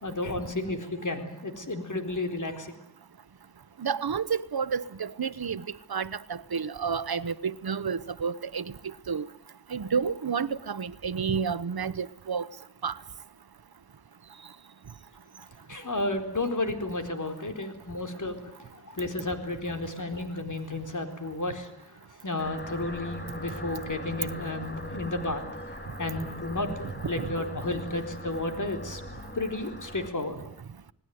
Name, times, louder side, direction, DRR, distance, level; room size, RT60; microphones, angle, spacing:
voice 1, 0.0-2.7 15.7-21.7 22.2-25.4 26.0-29.0 29.3-30.5, left 2 dB, 55° left, 4.1 m, -32 dB
voice 2, 3.8-5.6 5.9-6.1 6.5-8.6 9.1-9.3 9.7-12.5 12.8-12.9 27.2-27.3, right 6 dB, 90° right, 1.0 m, -30 dB
sound 1, 22.4-30.1, equal, 30° left, 3.3 m, -40 dB
28.0 x 19.5 x 9.4 m
wide cardioid pair, 70°, 36 cm